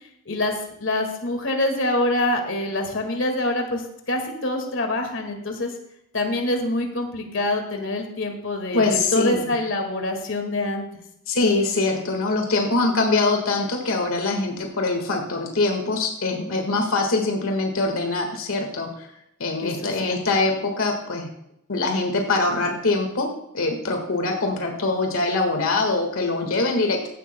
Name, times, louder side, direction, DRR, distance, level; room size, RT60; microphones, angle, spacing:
voice 1, 0.3-3.8 4.1-5.7 6.1-10.8 19.6-20.2, left 1 dB, 65° left, 4 dB, 1.9 m, -25 dB
voice 2, 8.7-9.5 11.3-19.1 19.4-21.3 21.7-23.3 23.5-27.1, left 3 dB, 90° left, 3 dB, 1.7 m, -23 dB
15.5 x 11.5 x 2.2 m, 0.79 s
head